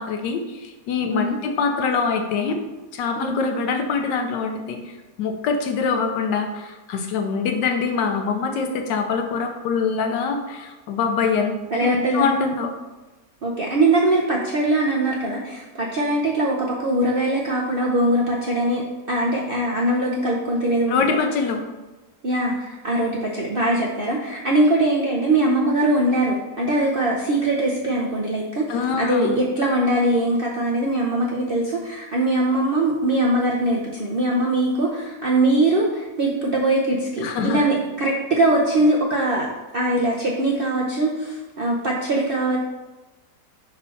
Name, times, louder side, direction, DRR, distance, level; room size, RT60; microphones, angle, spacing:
voice 1, 0.0-2.6 2.9-12.7 20.9-21.6 28.7-29.3 37.2-37.6, left 5 dB, 85° left, 4 dB, 1.4 m, -24 dB
voice 2, 11.7-12.3 13.4-18.8 19.1-21.2 22.2-39.5 39.7-42.6, right 1 dB, 65° right, -3 dB, 0.5 m, -21 dB
4.2 x 4.1 x 5.6 m, 1.2 s
omnidirectional pair, 1.8 m